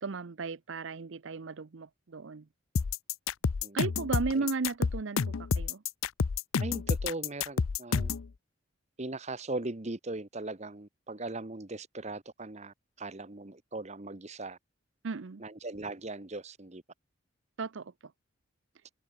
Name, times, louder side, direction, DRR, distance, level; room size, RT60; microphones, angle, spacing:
voice 1, 0.0-2.5 3.7-5.8 15.0-15.4 17.6-18.1, right 4 dB, 65° right, 0.6 m, -35 dB
sound 1, 2.8-8.3, left 5 dB, 80° left, 0.6 m, -29 dB
voice 2, 6.6-8.1 9.0-14.6 15.4-16.8, right 2 dB, 35° right, 1.1 m, -39 dB
head